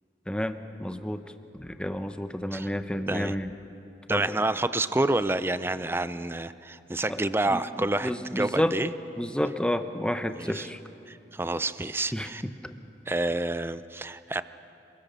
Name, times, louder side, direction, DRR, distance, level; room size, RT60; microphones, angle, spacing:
voice 1, 0.3-1.2 1.5-3.5 4.1-4.4 7.1-7.2 7.5-8.7 9.2-10.8 12.1-12.7, left 1 dB, 5° left, 8 dB, 0.8 m, -30 dB
voice 2, 4.1-8.9 10.3-10.7 11.1-12.4 13.1-14.4, right 2 dB, 15° right, 13 dB, 0.5 m, -28 dB
27.5 x 21.5 x 6.9 m, 2.7 s
head